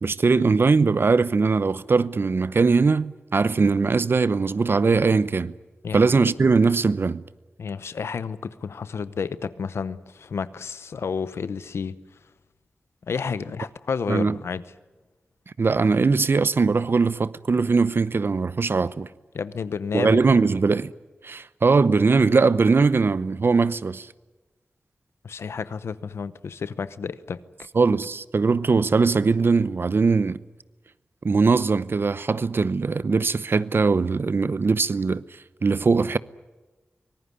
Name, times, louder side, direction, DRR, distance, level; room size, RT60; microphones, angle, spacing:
voice 1, 0.0-5.5 5.9-7.2 14.1-14.4 15.6-19.1 19.9-20.9 21.2-24.1 27.7-30.4 31.2-35.2 35.6-36.2, right 4 dB, 60° right, 0.8 m, -20 dB
voice 2, 7.6-11.9 13.1-14.6 19.3-20.2 25.2-27.4, left 6 dB, 90° left, 0.8 m, -31 dB
24.5 x 18.5 x 9.8 m
cardioid pair, 45°, 4 cm